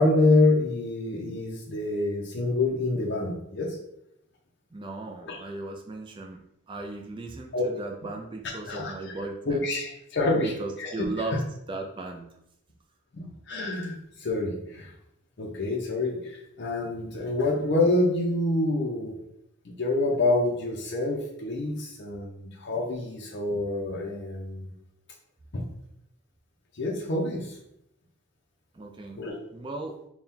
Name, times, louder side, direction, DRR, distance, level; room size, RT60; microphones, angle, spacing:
voice 1, 0.0-3.7 5.2-5.4 7.5-7.7 8.7-9.1 9.5-10.5 10.8-11.1 13.1-14.9 15.4-16.2 16.6-19.1 19.8-24.7 25.5-25.6 26.8-27.6 29.2-29.4, left 2 dB, 55° left, -2 dB, 0.6 m, -26 dB
voice 2, 4.7-9.7 10.3-12.3 28.7-29.2 29.5-30.0, right 2 dB, 25° right, 2 dB, 0.4 m, -36 dB
4.2 x 2.3 x 3.6 m, 0.78 s
head